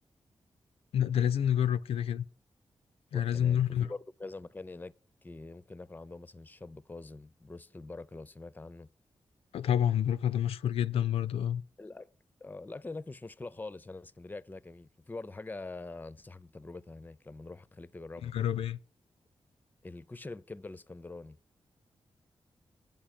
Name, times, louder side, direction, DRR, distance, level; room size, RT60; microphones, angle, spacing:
voice 1, 0.9-2.3 3.1-3.9 9.5-11.6 18.2-18.8, left 10 dB, 90° left, 0.4 m, -28 dB
voice 2, 3.1-4.9 5.2-8.9 11.8-12.1 12.4-18.3 19.8-21.4, left 3 dB, 20° left, 0.4 m, -44 dB
8.8 x 5.5 x 6.4 m
cardioid pair, 55°, 10 cm